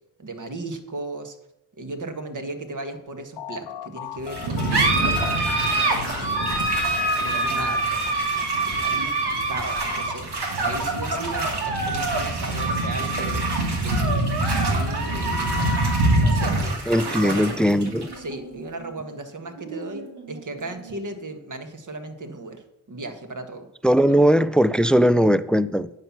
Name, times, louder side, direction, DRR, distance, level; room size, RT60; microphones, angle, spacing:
voice 1, 0.2-1.4 1.8-5.5 5.8-6.8 7.2-10.2 10.6-13.5 13.8-14.2 14.7-15.7 16.1-16.8 17.1-17.4 18.2-22.6 22.9-23.7 24.1-24.2, right 2 dB, 45° right, 6 dB, 1.6 m, -36 dB
sound 1, 3.4-8.5, left 12 dB, 80° left, 0.7 m, -37 dB
sound 2, 4.2-16.6, right 1 dB, 90° right, 1.7 m, -27 dB
sound 3, 4.3-21.3, right 2 dB, 60° right, 2.4 m, -27 dB
voice 2, 16.9-18.1 23.8-25.9, equal, ahead, 16 dB, 0.3 m, -19 dB
9.5 x 5.9 x 5.9 m, 0.87 s
supercardioid pair, 50°, 44 cm